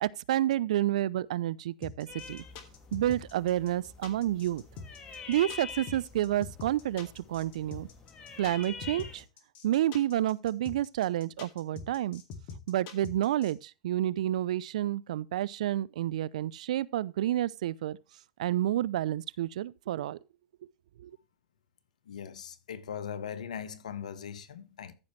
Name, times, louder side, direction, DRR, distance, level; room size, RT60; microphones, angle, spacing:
voice 1, 0.0-2.4 2.9-4.6 5.3-7.9 8.4-9.2 9.6-12.2 12.7-18.0 18.4-20.2 21.0-21.1, right 13 dB, 70° right, 0.4 m, -29 dB
sound 1, 1.8-13.5, left 5 dB, 45° left, 2.2 m, -44 dB
sound 2, 2.1-9.3, left 5 dB, 25° left, 2.2 m, -46 dB
voice 2, 22.1-24.9, left 8 dB, 80° left, 1.2 m, -40 dB
14.0 x 5.7 x 3.2 m
hypercardioid pair, 110°, 4 cm